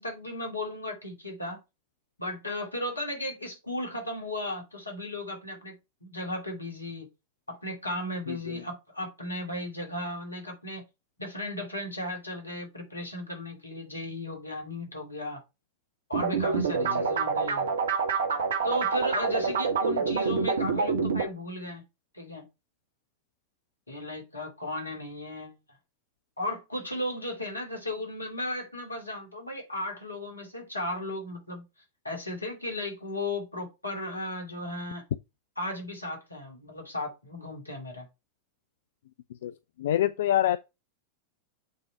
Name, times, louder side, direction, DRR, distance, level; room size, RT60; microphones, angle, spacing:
voice 1, 0.0-1.6 2.2-5.8 6.0-7.1 7.5-10.8 11.2-15.4 16.1-17.7 18.6-21.8 22.1-22.5 23.9-25.5 26.4-31.6 32.0-35.0 35.6-38.1, left 1 dB, 80° left, 2.6 m, -35 dB
voice 2, 8.3-8.6 16.8-17.0 39.4-39.5 39.8-40.6, left 12 dB, 60° left, 0.3 m, -26 dB
sound 1, 16.1-21.3, right 5 dB, 65° right, 1.2 m, -27 dB
8.1 x 3.8 x 4.5 m
figure-of-eight pair, 90°, 0 cm